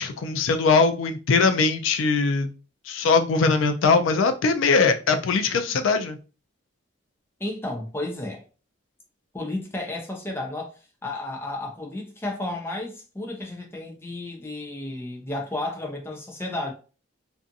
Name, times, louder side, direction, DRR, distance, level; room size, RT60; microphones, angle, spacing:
voice 1, 0.0-2.5 2.9-6.2, left 4 dB, 80° left, 0.4 m, -21 dB
voice 2, 7.4-8.4 9.3-10.7 11.0-16.7, left 2 dB, 10° left, 0.4 m, -32 dB
2.5 x 2.4 x 2.6 m
head